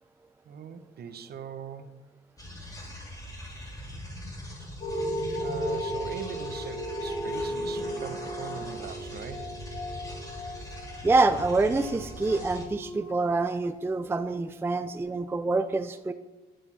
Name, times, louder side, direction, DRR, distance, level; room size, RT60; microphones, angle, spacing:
voice 1, 0.5-1.9 5.4-9.5, right 6 dB, 55° right, 11 dB, 0.8 m, -41 dB
sound 1, 2.4-12.6, equal, 15° left, 2.6 m, -41 dB
sound 2, 4.8-13.7 14.3-14.4, equal, 40° left, 1.9 m, -35 dB
voice 2, 11.0-16.1, right 3 dB, 10° right, 10 dB, 0.4 m, -26 dB
11.0 x 6.8 x 4.2 m, 1.1 s
cardioid pair, 90°, 20 cm